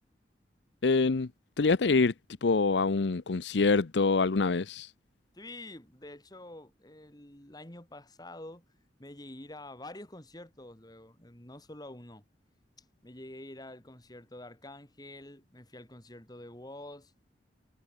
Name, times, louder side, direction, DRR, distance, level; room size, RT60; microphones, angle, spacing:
voice 1, 0.8-1.3 1.6-2.1 2.4-4.9, left 4 dB, 85° left, 0.7 m, -25 dB
voice 2, 5.3-8.6 9.0-12.2 12.8-17.1, left 1 dB, 20° left, 2.9 m, -47 dB
head